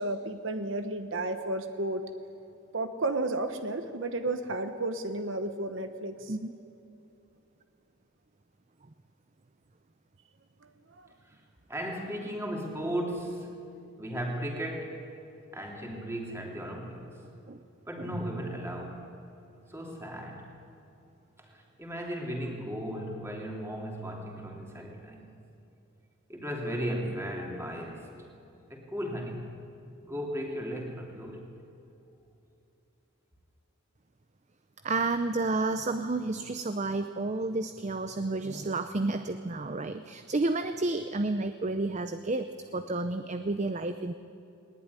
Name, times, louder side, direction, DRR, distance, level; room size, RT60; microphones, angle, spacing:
voice 1, 0.0-2.1 2.7-6.3 10.6-10.7 11.0-11.1, right 2 dB, 65° right, 8 dB, 1.1 m, -32 dB
voice 2, 11.7-13.5 14.0-15.0 15.5-17.2 17.9-19.1 19.7-20.5 21.4-25.2 26.3-28.1 28.7-29.4 30.0-31.5, equal, 15° right, 0 dB, 3.1 m, -36 dB
voice 3, 18.0-18.3 34.8-44.1, right 2 dB, 35° right, 9 dB, 0.6 m, -31 dB
20.0 x 18.5 x 9.7 m, 2.9 s
head